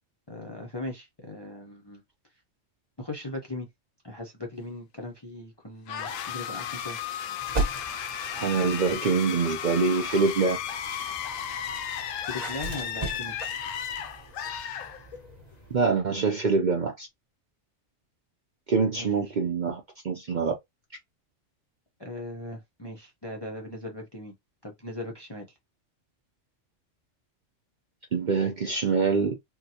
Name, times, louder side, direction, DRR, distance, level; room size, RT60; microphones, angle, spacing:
voice 1, 0.3-2.0 3.0-3.7 4.0-7.0 12.3-13.6 19.0-19.4 22.0-24.3 24.6-25.6, left 2 dB, 30° left, 0.5 m, -39 dB
sound 1, 5.9-15.4, left 8 dB, 85° left, 1.0 m, -34 dB
sound 2, 7.4-9.0 9.6-15.9, right 3 dB, 35° right, 1.0 m, -38 dB
voice 2, 8.4-10.6 15.7-17.1 18.7-20.5 28.1-29.4, right 4 dB, 50° right, 0.5 m, -25 dB
3.7 x 2.1 x 2.8 m
omnidirectional pair, 1.3 m